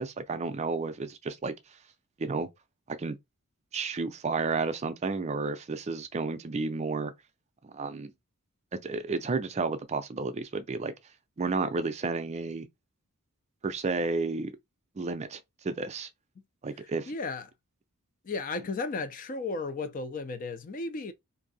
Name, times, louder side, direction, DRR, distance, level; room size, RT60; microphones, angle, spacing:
voice 1, 0.0-1.5 2.2-2.5 2.9-3.2 3.7-7.1 7.6-8.1 8.7-10.9 11.4-12.7 13.6-14.5 15.0-15.4 15.6-16.1 16.6-17.1, right 3 dB, 30° right, 0.4 m, -31 dB
voice 2, 16.8-17.5 18.2-21.1, left 3 dB, 35° left, 0.4 m, -34 dB
2.7 x 2.6 x 3.9 m
head